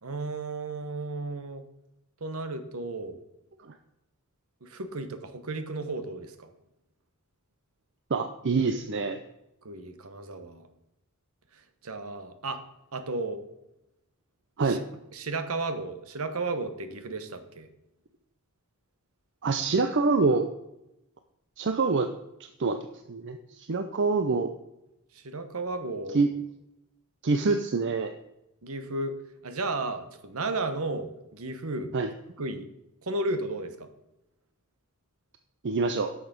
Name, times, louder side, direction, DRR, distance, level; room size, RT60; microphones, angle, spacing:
voice 1, 0.0-1.6 2.2-3.2 4.6-6.5 9.6-10.7 11.8-12.6 12.9-13.4 14.6-14.8 15.1-17.7 25.1-26.2 28.6-29.1 29.4-31.9 32.4-32.6 33.0-33.9, right 2 dB, 70° right, 9 dB, 1.1 m, -33 dB
voice 2, 8.1-9.2 14.6-14.8 19.4-20.5 21.6-22.1 22.6-22.8 23.1-24.5 26.1-26.3 27.2-28.1 31.9-32.1 35.6-36.1, right 4 dB, 55° right, 7 dB, 0.6 m, -25 dB
11.0 x 6.4 x 5.1 m, 0.89 s
head